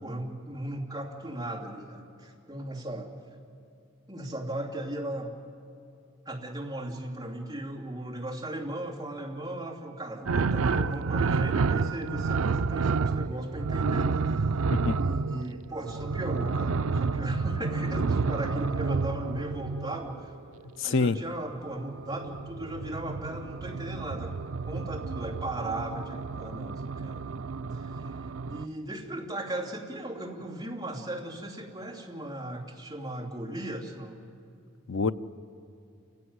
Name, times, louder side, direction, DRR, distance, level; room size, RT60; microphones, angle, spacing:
voice 1, 0.0-3.1 4.1-5.3 6.2-14.6 14.9-20.3 20.8-24.4 24.7-27.5 27.7-34.2, right 1 dB, 20° right, 2.8 m, -37 dB
sound 1, 10.3-20.2 21.8-28.7, right 4 dB, 85° right, 0.5 m, -30 dB
voice 2, 20.8-21.2 34.9-35.1, left 4 dB, 65° left, 0.6 m, -26 dB
28.5 x 16.0 x 9.6 m
head